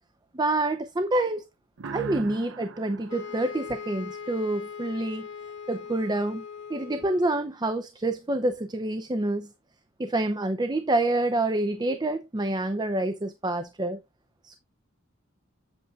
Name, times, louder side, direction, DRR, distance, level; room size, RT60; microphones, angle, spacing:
voice 1, 0.3-1.4 1.8-5.3 5.7-6.4 6.7-9.5 10.0-14.0 14.4-14.6, right 2 dB, 20° right, 0.6 m, -27 dB
sound 1, 1.8-4.5, right 4 dB, 65° right, 0.5 m, -40 dB
sound 2, 3.1-7.5, left 6 dB, 60° left, 1.8 m, -40 dB
7.9 x 7.9 x 2.3 m
head